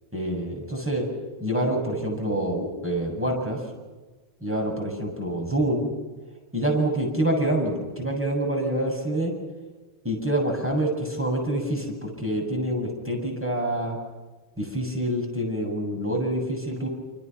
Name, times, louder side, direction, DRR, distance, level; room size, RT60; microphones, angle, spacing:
voice 1, 0.1-1.0 1.4-3.6 4.4-5.9 6.5-9.3 10.0-14.0 14.6-16.9, right 1 dB, 10° right, 0 dB, 7.6 m, -26 dB
29.0 x 28.0 x 6.1 m, 1.3 s
omnidirectional pair, 1.2 m